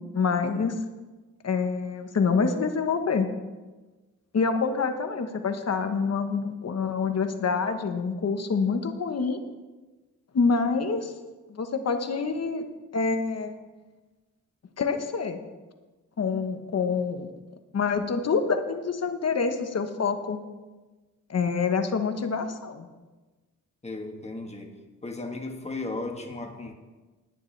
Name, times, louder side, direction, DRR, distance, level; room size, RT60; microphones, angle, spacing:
voice 1, 0.1-0.8 1.4-3.3 4.3-9.4 10.3-11.1 11.5-12.6 12.9-13.5 14.8-15.4 16.2-17.3 17.7-20.4 21.3-22.9, left 5 dB, 55° left, 6 dB, 1.2 m, -26 dB
voice 2, 23.8-24.7 25.0-26.7, left 2 dB, 20° left, 2 dB, 1.5 m, -35 dB
19.0 x 10.0 x 3.3 m, 1.2 s
wide cardioid pair, 140°, 31 cm